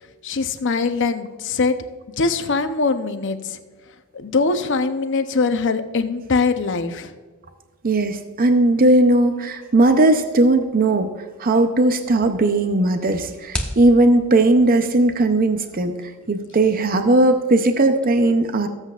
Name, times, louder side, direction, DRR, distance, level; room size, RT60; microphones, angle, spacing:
voice 1, 0.2-1.8 2.2-3.6 4.1-7.1, left 4 dB, 60° left, 9 dB, 0.7 m, -22 dB
voice 2, 7.8-11.1 11.4-16.0 16.3-18.7, right 2 dB, 40° right, 7 dB, 0.6 m, -17 dB
sound 1, 11.8-18.1, equal, 5° left, 1.0 m, -38 dB
18.5 x 8.0 x 2.4 m, 1.4 s
head